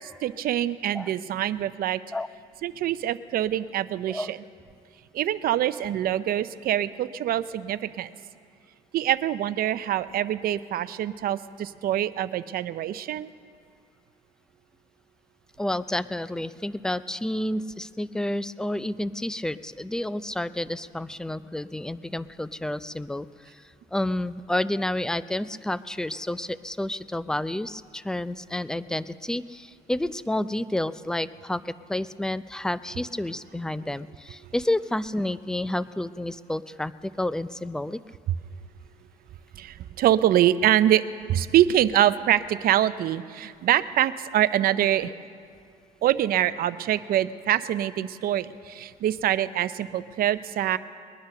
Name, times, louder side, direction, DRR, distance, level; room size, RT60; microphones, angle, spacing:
voice 1, 0.0-2.0 2.6-4.4 5.1-8.1 8.9-13.3 34.4-34.5 38.3-38.4 39.5-41.0 41.3-45.1 46.0-50.8, right 12 dB, 60° right, 14 dB, 0.6 m, -24 dB
voice 2, 15.6-23.3 23.9-38.0, left 1 dB, 5° left, 15 dB, 0.4 m, -30 dB
21.0 x 10.0 x 6.6 m, 2.3 s
cardioid pair, 110°, 17 cm